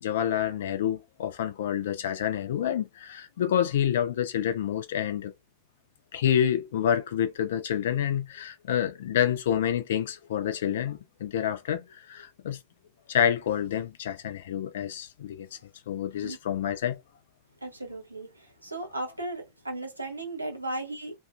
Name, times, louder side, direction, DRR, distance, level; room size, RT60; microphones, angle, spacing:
voice 1, 0.0-5.3 6.1-12.6 13.1-15.6 15.9-17.0, left 9 dB, 60° left, 0.5 m, -28 dB
voice 2, 17.6-18.3 18.6-21.1, right 2 dB, 85° right, 0.8 m, -35 dB
2.7 x 2.4 x 2.4 m
figure-of-eight pair, 90°, 0 cm